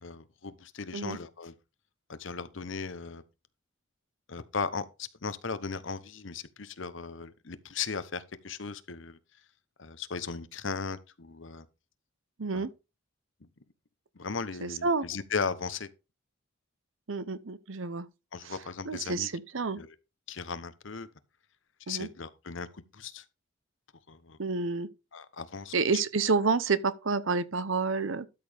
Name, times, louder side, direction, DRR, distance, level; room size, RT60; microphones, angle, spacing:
voice 1, 0.0-1.5 2.1-3.2 4.3-9.2 9.8-11.7 12.5-12.7 14.2-15.9 18.3-19.3 19.8-19.9 20.3-21.1 21.9-23.2 24.1-24.4 25.1-25.7, left 5 dB, 65° left, 0.9 m, -37 dB
voice 2, 12.4-12.7 14.6-15.1 17.1-18.1 18.4-18.5 18.9-19.8 21.9-22.1 24.4-24.9 25.7-28.3, right 4 dB, 70° right, 0.8 m, -29 dB
12.5 x 6.8 x 3.5 m
head